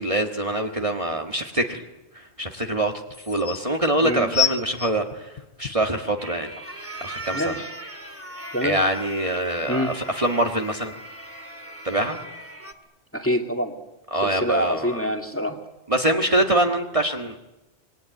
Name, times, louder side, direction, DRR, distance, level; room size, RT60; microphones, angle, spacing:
voice 1, 0.0-1.8 2.1-6.5 7.0-7.6 8.6-10.9 11.8-12.2 14.1-15.0 15.9-17.4, right 1 dB, 30° right, 2 dB, 1.7 m, -24 dB
sound 1, 1.0-1.1 2.7-2.8 3.1-3.6 4.3-5.9 6.6-6.7, left 8 dB, 40° left, 1.1 m, -26 dB
sound 2, 6.2-12.7, right 1 dB, 10° right, 2.0 m, -38 dB
voice 2, 7.3-7.7 8.5-8.8 9.7-9.9 13.1-13.7 14.2-15.6, equal, 10° left, 3 dB, 2.3 m, -26 dB
27.0 x 21.0 x 9.3 m, 0.98 s
omnidirectional pair, 1.1 m